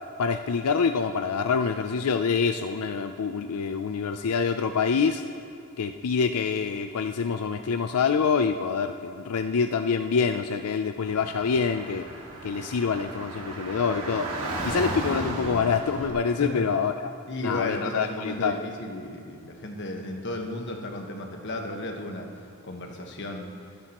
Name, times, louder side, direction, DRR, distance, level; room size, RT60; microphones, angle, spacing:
voice 1, 0.2-5.2 5.8-12.1 12.4-14.3 14.6-17.1 17.4-18.7, left 5 dB, 90° left, 8 dB, 0.4 m, -26 dB
Car / Traffic noise roadway noise, 11.0-16.1, right 1 dB, 70° right, 2.0 m, -34 dB
voice 2, 17.3-22.3 22.6-23.5, left 1 dB, 55° left, 3 dB, 1.3 m, -34 dB
23.0 x 10.5 x 3.0 m, 2.4 s
head